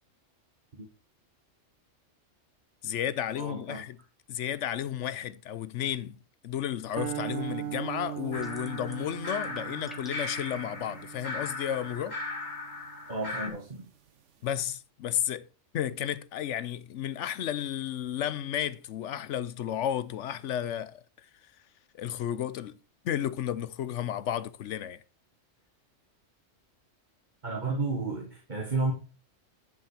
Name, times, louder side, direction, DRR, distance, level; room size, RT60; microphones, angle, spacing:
voice 1, 2.8-4.0 4.3-6.2 6.4-12.2 14.4-15.5 15.7-21.0 22.0-22.8 23.0-25.0, left 10 dB, 75° left, 0.9 m, -32 dB
voice 2, 3.4-3.8 13.1-13.9 27.4-28.9, right 3 dB, 40° right, 1.8 m, -32 dB
sound 1, 7.0-13.3, right 12 dB, 70° right, 1.1 m, -40 dB
sound 2, 8.3-13.5, left 3 dB, 55° left, 2.4 m, -38 dB
sound 3, 8.4-9.1 9.4-10.4, equal, ahead, 1.5 m, -50 dB
10.5 x 5.4 x 5.0 m
omnidirectional pair, 1.3 m